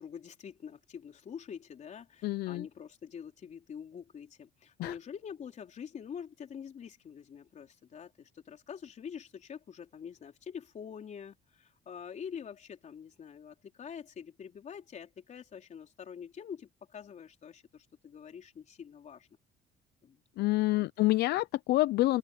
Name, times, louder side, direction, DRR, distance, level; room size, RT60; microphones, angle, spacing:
voice 1, 0.0-19.3 20.0-20.2 20.7-20.8, left 7 dB, 45° left, 4.0 m, -46 dB
voice 2, 2.2-2.7 4.8-4.9 20.4-22.2, left 18 dB, 70° left, 0.6 m, -27 dB
open air
cardioid pair, 110°, 17 cm